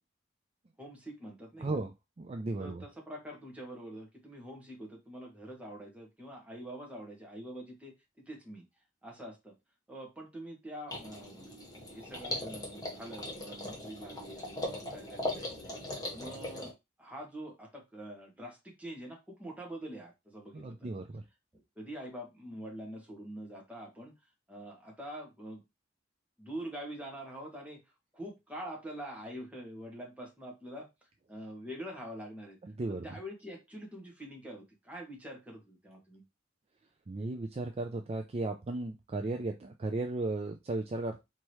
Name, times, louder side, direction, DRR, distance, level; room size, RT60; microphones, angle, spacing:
voice 1, 0.8-1.7 2.6-8.6 9.0-9.5 9.9-11.5 11.9-15.7 16.1-20.9 21.5-24.2 24.5-25.6 26.4-27.8 28.1-30.9 31.3-32.6 32.9-36.2, right 1 dB, 10° right, -1 dB, 1.4 m, -45 dB
voice 2, 1.6-1.9 2.2-2.8 20.5-21.2 32.8-33.0 37.1-41.2, right 2 dB, 35° right, 4 dB, 0.4 m, -35 dB
sound 1, 10.9-16.7, left 1 dB, 20° left, 1.3 m, -39 dB
4.7 x 2.9 x 3.0 m, 0.22 s
head